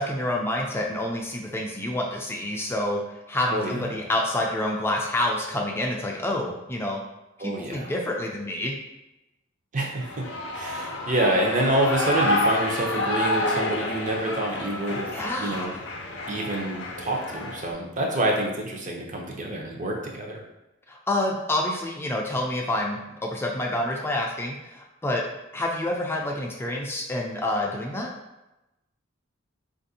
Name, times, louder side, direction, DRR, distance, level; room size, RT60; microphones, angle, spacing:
voice 1, 0.0-7.0 7.4-8.7 15.1-15.8 20.9-25.2 25.5-28.1, left 1 dB, 10° left, -1 dB, 0.4 m, -28 dB
voice 2, 7.4-7.9 9.7-10.2 10.5-15.1 15.4-15.7 16.3-20.4, right 1 dB, 40° right, 0 dB, 0.6 m, -27 dB
Shout / Cheering, 10.0-17.7, left 1 dB, 65° left, 0.5 m, -29 dB
4.1 x 2.5 x 2.7 m, 0.95 s
head